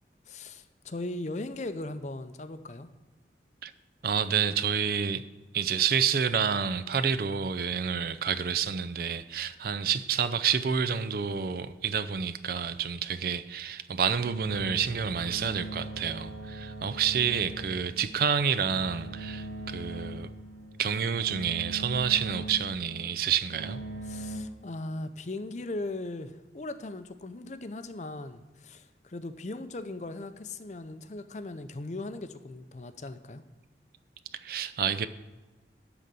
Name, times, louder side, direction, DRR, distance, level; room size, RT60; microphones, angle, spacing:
voice 1, 0.3-2.9 24.1-33.4, left 2 dB, 40° left, 0.5 m, -38 dB
voice 2, 4.0-5.2 5.5-20.3 20.8-23.8 34.3-35.1, right 7 dB, 55° right, 0.4 m, -29 dB
sound 1, 14.2-24.4, right 2 dB, 80° right, 2.8 m, -41 dB
12.0 x 4.0 x 7.5 m
head